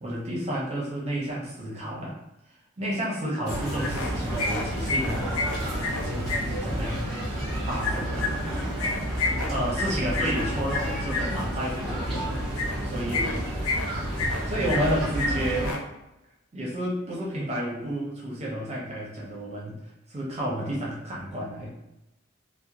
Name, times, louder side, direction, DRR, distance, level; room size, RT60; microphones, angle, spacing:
voice 1, 0.0-2.2 2.8-5.4 5.9-7.1 7.7-8.5 9.4-13.4 14.5-15.8 16.5-19.8 20.1-21.9, equal, 30° right, -4 dB, 0.5 m, -31 dB
sound 1, 3.5-4.1 4.4-6.4 7.8-11.2 12.5-12.8 13.1-13.9 14.2-14.9 15.2-15.3 15.6-15.8, left 3 dB, 85° left, 0.5 m, -30 dB
sound 2, 3.5-15.7, equal, ahead, 0.9 m, -30 dB
2.3 x 2.0 x 2.8 m, 0.91 s
head